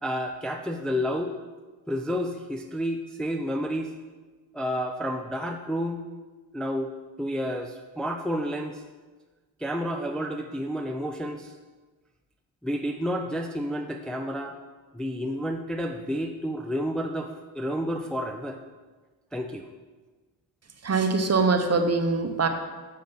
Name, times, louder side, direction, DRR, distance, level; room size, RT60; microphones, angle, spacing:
voice 1, 0.0-1.3 1.9-3.9 4.5-6.0 6.5-6.9 7.2-8.8 9.6-11.5 12.6-14.6 14.9-18.6 19.3-19.7, equal, ahead, 3 dB, 0.5 m, -30 dB
voice 2, 20.8-22.5, right 4 dB, 35° right, 6 dB, 0.9 m, -23 dB
6.7 x 6.6 x 3.9 m, 1.3 s
supercardioid pair, 50°, 46 cm